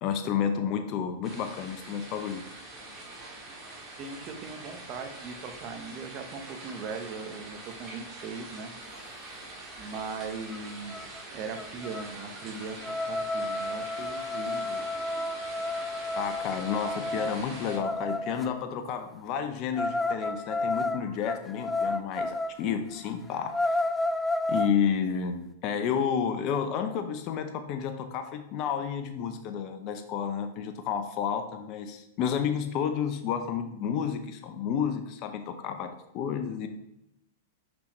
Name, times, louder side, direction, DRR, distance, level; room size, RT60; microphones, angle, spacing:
voice 1, 0.0-2.4 16.2-23.8 24.5-36.7, left 7 dB, 45° left, 7 dB, 0.6 m, -31 dB
Rain in the backyard, 1.2-17.8, right 2 dB, 25° right, 2.2 m, -44 dB
voice 2, 4.0-8.7 9.8-14.8, right 4 dB, 40° right, 5 dB, 1.0 m, -39 dB
sound 1, 10.5-10.6 10.9-11.2 11.6-18.5 19.7-22.6 23.0-23.1 23.4-24.8, left 2 dB, 10° left, 0.3 m, -31 dB
6.1 x 5.8 x 3.1 m, 0.84 s
hypercardioid pair, 110°, 0 cm